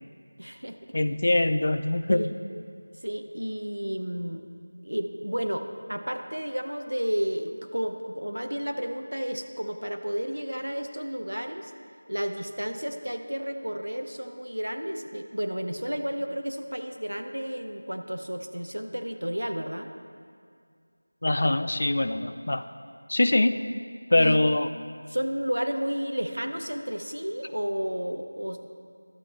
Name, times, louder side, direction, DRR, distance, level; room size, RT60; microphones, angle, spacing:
voice 1, 0.4-0.8 2.1-2.3 3.0-4.4 4.8-11.7 12.1-19.9 24.2-24.4 25.1-28.7, equal, 80° right, 6 dB, 0.7 m, -32 dB
voice 2, 0.9-2.3 21.2-22.7 23.1-23.6 24.1-24.7, left 1 dB, 45° left, 10 dB, 0.3 m, -23 dB
11.0 x 8.5 x 3.3 m, 2.2 s
figure-of-eight pair, 170°, 0 cm